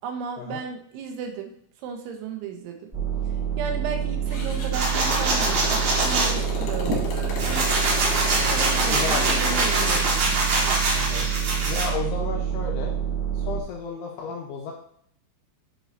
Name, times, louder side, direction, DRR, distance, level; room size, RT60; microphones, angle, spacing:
voice 1, 0.0-2.9 3.3-7.8 8.5-10.9, right 5 dB, 85° right, 4 dB, 3.2 m, -35 dB
sound 1, 2.9-13.6, right 9 dB, 35° right, 0.9 m, -27 dB
Motorcycle, 4.3-10.1, left 5 dB, 65° left, 2.1 m, -34 dB
sound 2, 4.7-6.3 6.9-11.9, right 2 dB, 60° right, 2.2 m, -24 dB
voice 2, 8.4-9.4 10.9-11.3 11.6-13.0 13.3-14.7, left 6 dB, 80° left, 0 dB, 2.4 m, -33 dB
10.0 x 4.1 x 2.6 m, 0.64 s
omnidirectional pair, 5.4 m